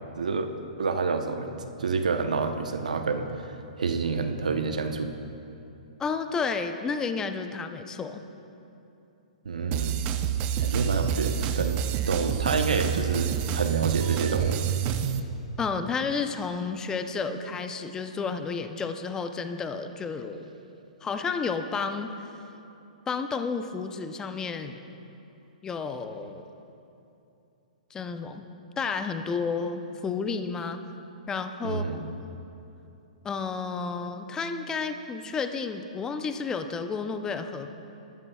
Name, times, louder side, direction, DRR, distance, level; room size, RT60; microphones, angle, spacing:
voice 1, 0.2-0.5 0.8-3.5 3.8-5.1 9.4-10.0 10.6-14.6 31.6-32.0, right 4 dB, 80° right, 6 dB, 0.9 m, -28 dB
voice 2, 6.0-8.2 15.6-20.5 21.0-22.1 23.1-24.8 25.6-26.5 27.9-28.4 28.8-30.8 31.3-31.8 33.2-37.7, left 5 dB, 15° left, 8 dB, 0.6 m, -31 dB
sound 1, 9.7-15.2, right 9 dB, 35° right, 0.6 m, -28 dB
21.0 x 13.0 x 2.4 m, 2.8 s
hypercardioid pair, 120°, 4 cm